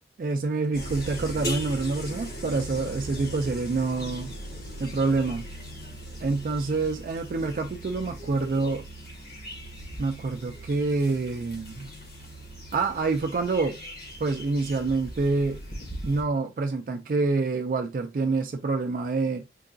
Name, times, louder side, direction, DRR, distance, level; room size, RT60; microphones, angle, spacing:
voice 1, 0.2-4.3 4.8-5.5 6.2-8.9 10.0-11.9 12.7-13.8 14.2-15.6 16.0-19.4, right 3 dB, 45° right, 0.3 m, -27 dB
sound 1, 0.7-16.2, equal, 50° left, 1.4 m, -39 dB
4.5 x 2.6 x 2.3 m
head